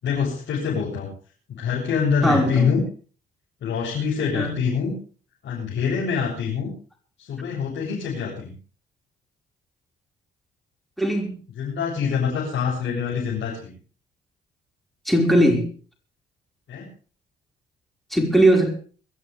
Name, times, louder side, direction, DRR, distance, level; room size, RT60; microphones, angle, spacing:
voice 1, 0.0-1.1 1.5-2.8 3.6-4.9 5.4-6.7 7.2-8.5 11.6-13.7 16.7-16.9, left 6 dB, 65° left, 8.0 m, -25 dB
voice 2, 2.2-2.8 4.3-4.5 11.0-11.3 15.0-15.7 18.1-18.7, right 1 dB, ahead, 5.2 m, -19 dB
23.0 x 14.5 x 3.5 m
cardioid pair, 90°, 20 cm